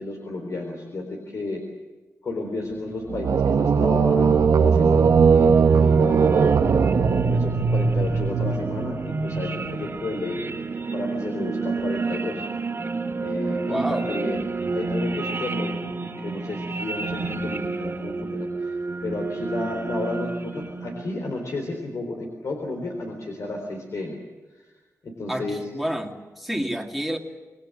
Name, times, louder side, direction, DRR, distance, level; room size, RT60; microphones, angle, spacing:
voice 1, 0.0-1.6 2.2-6.5 7.1-10.4 10.9-12.5 13.2-14.4 14.7-24.2 24.6-24.7 25.0-25.7, left 2 dB, 65° left, 2 dB, 4.0 m, -32 dB
sound 1, 2.7-21.1, right 3 dB, 45° right, 2.4 m, -29 dB
sound 2, 3.1-7.8, right 6 dB, 85° right, 1.2 m, -18 dB
voice 2, 13.7-14.1 25.3-27.2, equal, ahead, 1 dB, 2.4 m, -29 dB
27.5 x 21.0 x 7.8 m, 1.2 s
wide cardioid pair, 155°, 6 cm